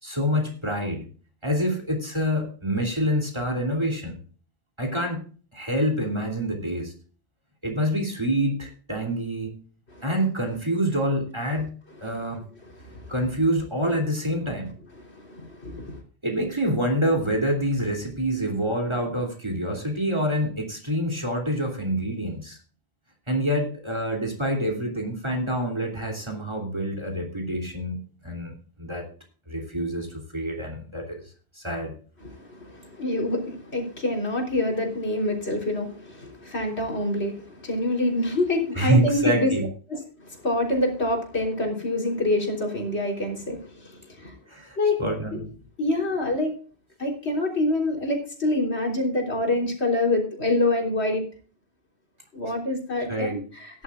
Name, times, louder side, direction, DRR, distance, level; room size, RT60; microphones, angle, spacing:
voice 1, 0.0-1.1 1.4-4.2 4.8-5.2 5.5-6.9 7.6-9.5 10.0-12.4 13.1-14.7 16.2-22.6 23.3-29.0 29.5-31.2 31.5-31.9 38.8-39.7 44.5-45.5 53.1-53.4, equal, 25° right, 2 dB, 3.0 m, -26 dB
voice 2, 12.8-13.1 15.0-16.0 32.2-39.5 39.9-44.4 44.8-45.0 45.3-45.4 45.8-46.5 47.0-51.2 52.3-53.8, left 2 dB, 90° left, 1 dB, 3.9 m, -26 dB
17.0 x 11.0 x 2.4 m, 0.40 s
omnidirectional pair, 1.1 m